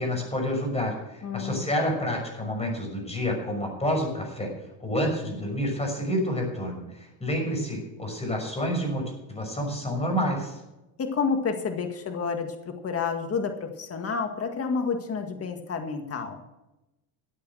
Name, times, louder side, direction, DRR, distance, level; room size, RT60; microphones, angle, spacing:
voice 1, 0.0-4.5 4.8-9.0 9.3-10.6, equal, 15° left, 2 dB, 6.0 m, -28 dB
voice 2, 1.2-1.7 11.0-16.4, left 5 dB, 30° left, 5 dB, 1.9 m, -30 dB
13.5 x 8.7 x 6.4 m, 0.96 s
supercardioid pair, 105°, 45 cm